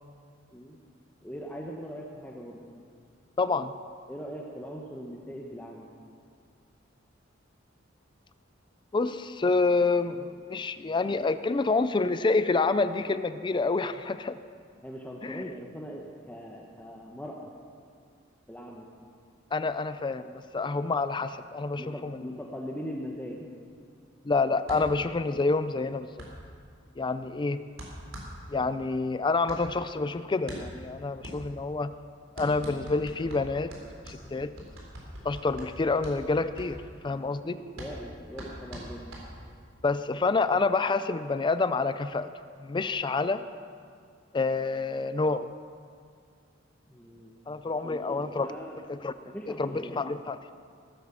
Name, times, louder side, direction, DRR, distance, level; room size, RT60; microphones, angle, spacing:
voice 1, 1.2-2.6 4.1-5.9 14.8-17.5 18.5-18.9 21.8-23.5 37.4-39.1 46.9-47.3 47.7-48.8 49.3-50.0, equal, 10° left, -2 dB, 1.0 m, -40 dB
voice 2, 3.4-3.7 8.9-14.4 15.2-15.4 19.5-22.4 24.3-26.1 27.0-27.6 28.5-31.9 32.4-33.7 34.1-34.5 35.2-37.6 39.8-42.3 42.6-43.4 44.3-45.5 47.5-48.5 48.9-49.1 49.6-50.4, left 3 dB, 25° left, 12 dB, 0.4 m, -28 dB
sound 1, 24.7-39.8, equal, 85° right, 3.9 m, -44 dB
18.0 x 9.0 x 7.0 m, 2.2 s
head